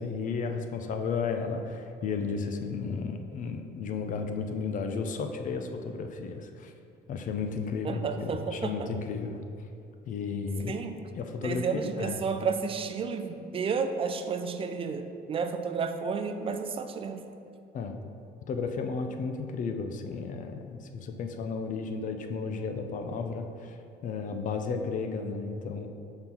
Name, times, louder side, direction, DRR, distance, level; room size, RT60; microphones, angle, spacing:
voice 1, 0.0-6.7 7.1-9.4 10.1-10.8 11.1-12.2 17.7-18.0 18.5-25.9, left 5 dB, 50° left, 6 dB, 0.5 m, -33 dB
voice 2, 7.8-8.9 10.7-10.9 11.4-17.2, right 5 dB, 35° right, 7 dB, 0.4 m, -31 dB
5.7 x 3.9 x 4.4 m, 2.6 s
cardioid pair, 110°, 17 cm